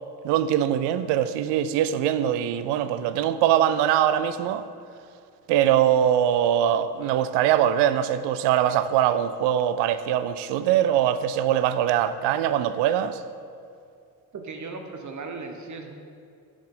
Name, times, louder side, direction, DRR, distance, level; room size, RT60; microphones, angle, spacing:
voice 1, 0.2-4.6 5.5-13.2, right 10 dB, 65° right, 13 dB, 0.5 m, -22 dB
voice 2, 14.3-15.9, right 4 dB, 40° right, 4 dB, 1.0 m, -37 dB
7.4 x 6.4 x 3.7 m, 2.4 s
hypercardioid pair, 45°, 45 cm